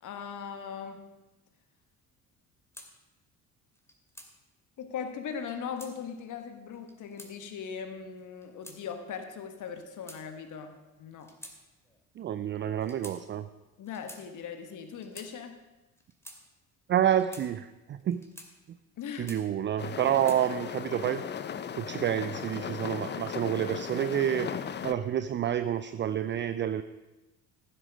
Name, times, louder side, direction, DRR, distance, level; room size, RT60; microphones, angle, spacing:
voice 1, 0.0-1.0 4.8-11.3 13.8-15.6 19.0-19.3, left 6 dB, 45° left, 7 dB, 1.4 m, -39 dB
sound 1, 2.7-2.9 3.7-4.3 5.3-5.9 6.7-7.3 8.2-8.8 9.6-10.6 11.2-11.6 11.8-12.0 12.8-13.2 13.8-14.2 14.9-15.3 16.0-16.4 17.1-17.5 18.1-18.5 19.0-19.6 20.1-20.4, equal, 5° left, 2.3 m, -49 dB
voice 2, 12.2-13.5 16.9-18.3 19.2-21.2 21.7-26.8, right 10 dB, 30° right, 12 dB, 0.5 m, -29 dB
sound 2, 19.8-24.9, left 8 dB, 25° left, 0.6 m, -37 dB
15.0 x 7.9 x 5.0 m, 1.1 s
figure-of-eight pair, 50°, 42 cm